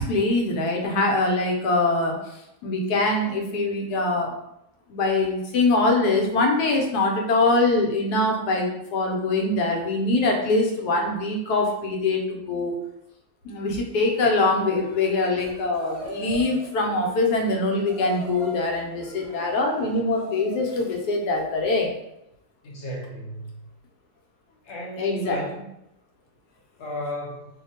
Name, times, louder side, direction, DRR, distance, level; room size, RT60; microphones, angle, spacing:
voice 1, 0.0-2.1 2.6-4.3 4.9-12.7 13.4-21.9 25.0-25.4, left 2 dB, 75° left, 1 dB, 1.2 m, -23 dB
sound 1, 14.6-20.8, right 2 dB, 35° right, 0.9 m, -41 dB
voice 2, 22.6-23.6 24.6-25.6 26.8-27.5, left 1 dB, 50° left, -3 dB, 1.0 m, -34 dB
2.8 x 2.2 x 4.1 m, 0.84 s
omnidirectional pair, 1.8 m